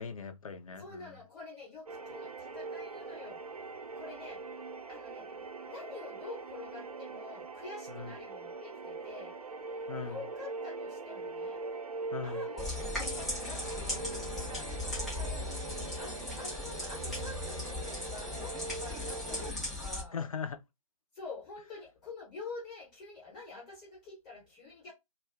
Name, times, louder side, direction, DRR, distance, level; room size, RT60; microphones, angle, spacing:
voice 1, 0.0-1.2 7.9-8.1 9.9-10.2 12.1-12.4 20.1-20.6, left 6 dB, 65° left, 0.6 m, -39 dB
voice 2, 0.8-3.4 3.9-4.5 4.9-9.4 10.0-11.6 12.2-20.2 21.1-24.9, left 4 dB, 20° left, 0.9 m, -47 dB
sound 1, 1.9-19.5, right 3 dB, 75° right, 0.5 m, -42 dB
sound 2, 12.6-20.0, left 2 dB, ahead, 0.5 m, -38 dB
2.4 x 2.3 x 3.2 m
figure-of-eight pair, 145°, 19 cm